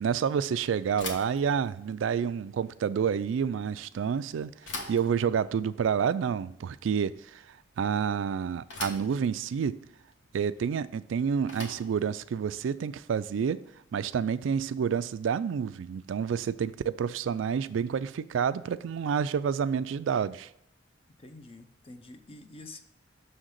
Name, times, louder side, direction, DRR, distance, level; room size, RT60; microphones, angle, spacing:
voice 1, 0.0-4.5 4.9-7.4 7.8-9.8 10.3-13.6 13.9-20.5, right 7 dB, 90° right, 0.3 m, -29 dB
Bicycle / Thump thud, 1.0-14.0, left 2 dB, 70° left, 1.3 m, -45 dB
voice 2, 21.2-22.8, left 2 dB, 30° left, 0.6 m, -47 dB
6.4 x 3.9 x 6.3 m
head